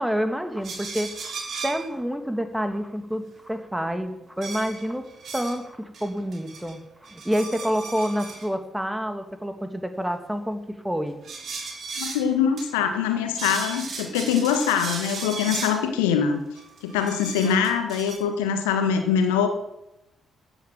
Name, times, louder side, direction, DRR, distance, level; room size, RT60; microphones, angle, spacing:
voice 1, 0.0-1.3 1.6-5.0 5.3-6.8 7.1-11.2 17.4-17.6, equal, 5° right, 7 dB, 2.4 m, -28 dB
sound 1, 0.6-1.9 4.4-5.6 5.9-6.7 7.0-8.5 11.2-12.3 12.6-12.7 12.9-13.0 13.3-15.8 16.6-18.2, right 4 dB, 50° right, 4.6 m, -35 dB
voice 2, 12.0-16.4 16.8-19.5, left 7 dB, 75° left, 6 dB, 1.6 m, -23 dB
15.0 x 8.9 x 7.5 m, 0.87 s
figure-of-eight pair, 40°, 0 cm